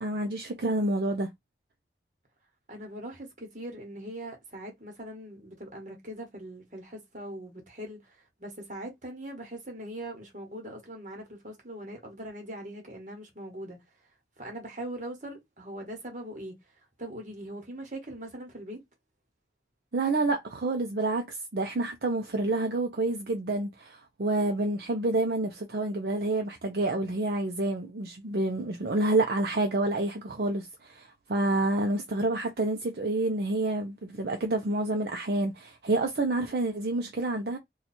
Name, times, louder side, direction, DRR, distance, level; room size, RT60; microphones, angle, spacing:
voice 1, 0.0-1.3 19.9-37.6, right 2 dB, 60° right, 0.6 m, -28 dB
voice 2, 2.7-13.8 14.4-18.8, right 1 dB, 45° right, 1.3 m, -41 dB
2.9 x 2.4 x 4.1 m
head